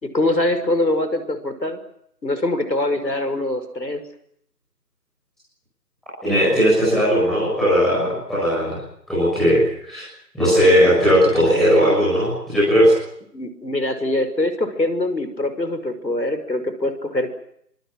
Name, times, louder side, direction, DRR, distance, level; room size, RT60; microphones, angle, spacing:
voice 1, 0.0-1.8 2.2-4.0 13.3-17.3, left 1 dB, 85° left, 9 dB, 5.6 m, -23 dB
voice 2, 6.2-8.8 9.1-10.0 10.3-12.9, equal, ahead, -11 dB, 7.2 m, -17 dB
28.5 x 25.5 x 6.2 m, 0.71 s
figure-of-eight pair, 170°, 50 cm